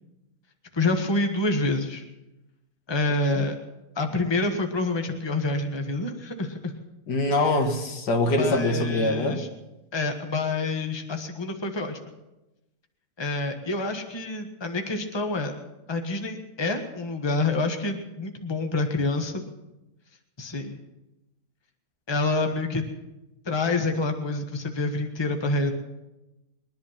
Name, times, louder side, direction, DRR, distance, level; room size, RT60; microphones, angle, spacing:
voice 1, 0.7-2.0 2.9-3.6 3.9-6.7 8.4-9.5 9.9-12.0 13.2-15.5 15.9-19.4 20.4-20.8 22.1-22.8 23.4-25.7, left 2 dB, 15° left, 5 dB, 1.3 m, -27 dB
voice 2, 3.1-3.4 7.1-9.4, left 2 dB, 80° left, 5 dB, 2.2 m, -24 dB
21.5 x 11.0 x 5.8 m, 0.99 s
omnidirectional pair, 1.8 m